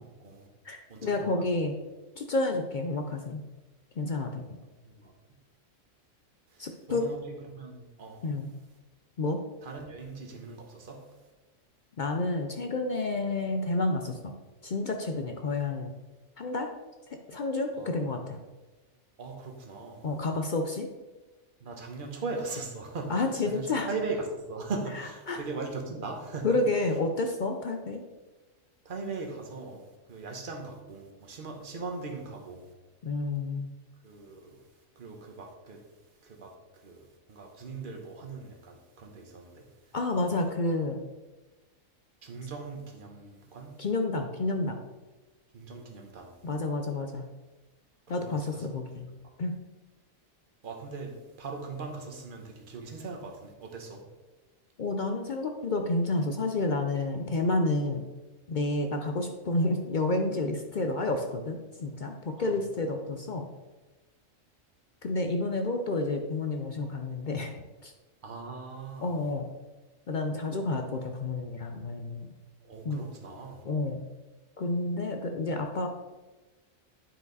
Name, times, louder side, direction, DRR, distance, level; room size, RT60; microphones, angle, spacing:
voice 1, 0.0-0.5 0.9-1.4 4.8-5.1 6.5-7.2 7.5-8.2 9.6-11.1 17.7-17.9 19.2-20.1 21.6-26.6 28.8-32.7 34.0-34.6 35.0-35.8 36.2-36.5 36.8-39.6 40.2-40.4 42.2-43.8 45.5-46.4 48.1-48.3 50.6-54.0 62.4-62.5 68.2-69.2 72.6-73.6, right 3 dB, 40° right, 2 dB, 1.2 m, -39 dB
voice 2, 0.6-1.8 2.2-3.4 4.0-4.6 6.6-7.1 8.2-8.5 9.2-9.4 12.0-14.3 14.6-15.9 16.4-16.7 17.1-18.4 20.0-20.9 23.1-23.9 24.9-25.4 26.4-28.0 33.0-33.7 39.9-41.0 43.8-44.8 46.4-47.3 48.1-49.1 49.4-49.5 54.8-58.0 58.5-63.5 65.0-67.5 67.8-67.9 69.0-69.5 70.1-72.3 72.8-73.1 73.6-74.0 74.6-75.9, left 2 dB, 55° left, 4 dB, 0.5 m, -30 dB
9.1 x 4.8 x 4.0 m, 1.2 s
omnidirectional pair, 1.4 m